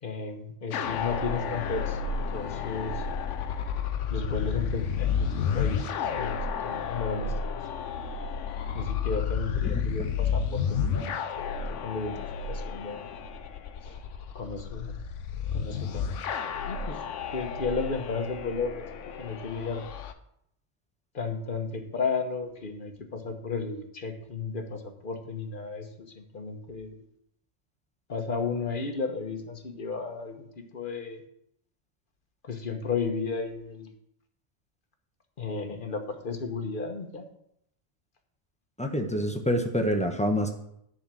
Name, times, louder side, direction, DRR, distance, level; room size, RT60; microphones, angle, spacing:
voice 1, 0.0-3.0 4.1-7.3 8.7-12.2 12.5-13.1 13.8-14.0 14.3-15.0 15.5-16.1 16.6-17.0 17.3-18.8 19.2-19.8 21.1-27.0 28.1-30.5 30.7-31.2 32.5-33.9 35.4-37.2, left 4 dB, 45° left, 5 dB, 1.2 m, -34 dB
sound 1, 0.7-20.1, left 6 dB, 90° left, 1.0 m, -31 dB
voice 2, 38.8-40.5, equal, 5° left, 3 dB, 1.0 m, -26 dB
10.5 x 4.0 x 7.5 m, 0.75 s
omnidirectional pair, 1.2 m